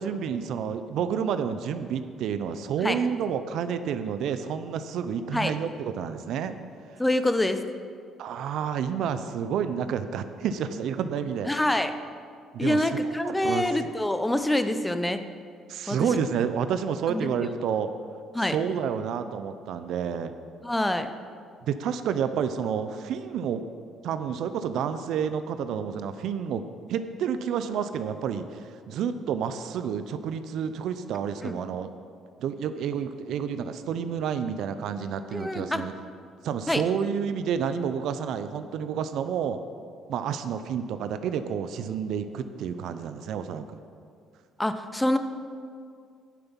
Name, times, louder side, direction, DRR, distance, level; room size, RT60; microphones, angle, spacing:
voice 1, 0.0-6.6 8.2-11.5 12.5-13.6 15.7-17.9 18.4-20.3 21.6-23.6 24.0-26.6 26.9-31.9 32.4-35.9 36.4-39.6 40.1-43.7, right 7 dB, 70° right, 10 dB, 0.6 m, -29 dB
voice 2, 7.0-7.6 11.5-11.9 12.6-15.2 15.9-16.1 17.1-17.5 18.3-18.6 20.6-21.1 31.4-31.5 35.3-35.8 36.7-36.8 44.6-45.2, left 1 dB, 10° left, 9 dB, 0.7 m, -26 dB
9.4 x 6.9 x 7.2 m, 2.3 s
supercardioid pair, 80°, 0 cm